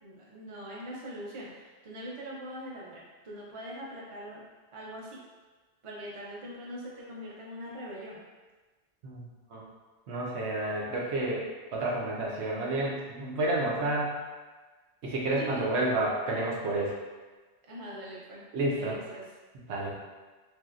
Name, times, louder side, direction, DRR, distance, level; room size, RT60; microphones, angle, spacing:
voice 1, 0.0-4.4 4.7-5.2 5.8-8.2 15.4-15.6 17.7-18.4 18.7-19.2, equal, 40° right, -4 dB, 0.5 m, -42 dB
voice 2, 9.0-9.6 10.1-11.4 11.7-14.2 15.0-16.9 18.5-19.0 19.7-19.9, right 2 dB, 90° right, -3 dB, 1.0 m, -30 dB
3.2 x 2.7 x 2.4 m, 1.3 s
omnidirectional pair, 1.1 m